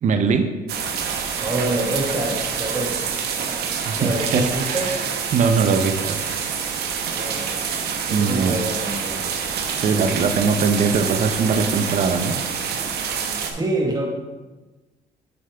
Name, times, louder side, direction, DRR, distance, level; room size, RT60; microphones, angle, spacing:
voice 1, 0.0-0.5 3.4-5.0 5.3-6.2 8.1-8.6 9.6-12.3, right 5 dB, 45° right, 7 dB, 0.6 m, -21 dB
sound 1, 0.7-13.5, right 6 dB, 70° right, 0.9 m, -27 dB
voice 2, 1.4-3.2 4.0-5.0 7.0-7.5 8.1-9.3 9.9-10.2 13.4-14.1, right 2 dB, 20° right, 1 dB, 1.4 m, -26 dB
7.2 x 6.6 x 3.4 m, 1.2 s
cardioid pair, 110°, 17 cm